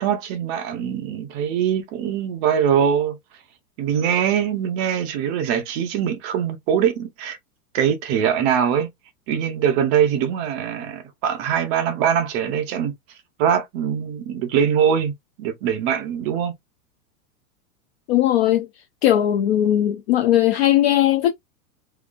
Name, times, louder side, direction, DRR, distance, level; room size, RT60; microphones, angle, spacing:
voice 1, 0.0-3.2 3.8-7.4 7.7-8.9 9.3-12.9 13.4-15.1 15.4-16.5, right 8 dB, 20° right, 0.4 m, -22 dB
voice 2, 18.1-18.7 19.0-21.3, left 12 dB, 45° left, 0.5 m, -18 dB
3.8 x 2.5 x 2.5 m
supercardioid pair, 160°, 45 cm